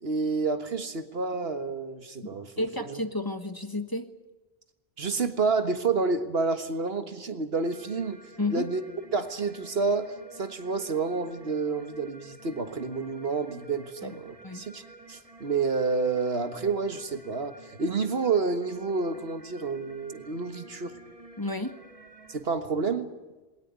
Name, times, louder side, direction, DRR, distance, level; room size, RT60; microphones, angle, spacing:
voice 1, 0.0-3.0 5.0-8.2 8.5-8.8 9.1-14.8 15.1-21.0 22.3-23.1, right 4 dB, 70° right, 9 dB, 1.8 m, -29 dB
voice 2, 2.6-4.1 8.4-8.7 14.0-14.1 14.4-14.7 21.4-21.8, left 2 dB, 20° left, 8 dB, 1.3 m, -31 dB
sound 1, 7.5-22.4, right 2 dB, 35° right, 2.6 m, -51 dB
21.5 x 18.5 x 9.5 m, 1.2 s
omnidirectional pair, 1.1 m